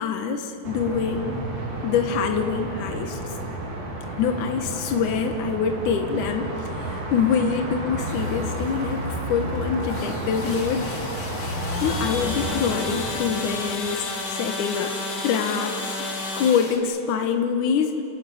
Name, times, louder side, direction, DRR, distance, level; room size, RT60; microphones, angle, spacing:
voice 1, 0.0-1.5 1.8-3.2 4.2-10.9 11.8-14.9 15.2-15.9 16.4-18.0, left 6 dB, 75° left, 5 dB, 2.7 m, -25 dB
sound 1, 0.6-13.1, right 1 dB, 80° right, 5.4 m, -31 dB
sound 2, 8.1-16.8, left 2 dB, 35° left, 2.3 m, -32 dB
29.5 x 15.5 x 9.2 m, 2.8 s
omnidirectional pair, 3.7 m